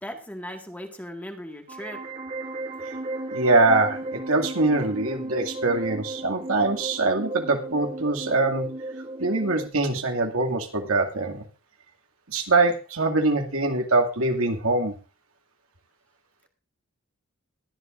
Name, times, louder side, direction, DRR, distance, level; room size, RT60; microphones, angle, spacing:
voice 1, 0.0-2.0, equal, 5° left, 3 dB, 1.8 m, -38 dB
sound 1, 1.7-9.7, right 2 dB, 35° right, 1.8 m, -35 dB
voice 2, 3.3-8.7 9.2-11.5 12.3-14.9, right 2 dB, 85° right, 3 dB, 2.3 m, -23 dB
22.0 x 11.0 x 2.5 m, 0.31 s
head